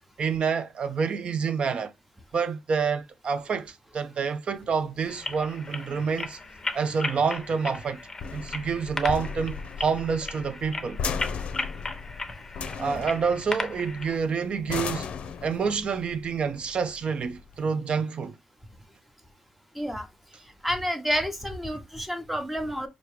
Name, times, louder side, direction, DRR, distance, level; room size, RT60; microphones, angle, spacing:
voice 1, 0.2-1.9 2.3-6.4 6.7-8.0 8.3-11.0 12.8-15.1 15.4-18.4, right 5 dB, 55° right, 0.6 m, -28 dB
sound 1, 4.6-17.6, left 6 dB, 75° left, 0.5 m, -37 dB
sound 2, 5.1-14.2, left 3 dB, 25° left, 0.7 m, -36 dB
voice 2, 20.6-22.9, equal, 5° right, 0.9 m, -29 dB
4.4 x 2.6 x 3.2 m
cardioid pair, 95°, 2 cm